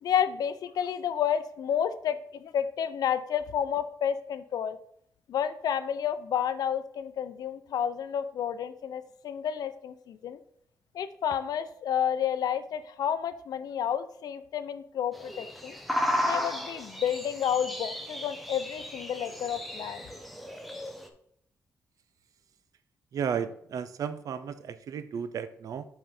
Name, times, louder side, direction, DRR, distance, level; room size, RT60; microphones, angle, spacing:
voice 1, 0.0-4.8 5.3-10.4 10.9-15.7 16.2-20.0, left 9 dB, 85° left, 11 dB, 0.5 m, -30 dB
sound 1, 15.1-21.1, left 1 dB, ahead, 0.7 m, -34 dB
voice 2, 23.1-25.8, right 7 dB, 65° right, 13 dB, 0.5 m, -34 dB
5.5 x 4.6 x 5.1 m, 0.70 s
wide cardioid pair, 165°, 6 cm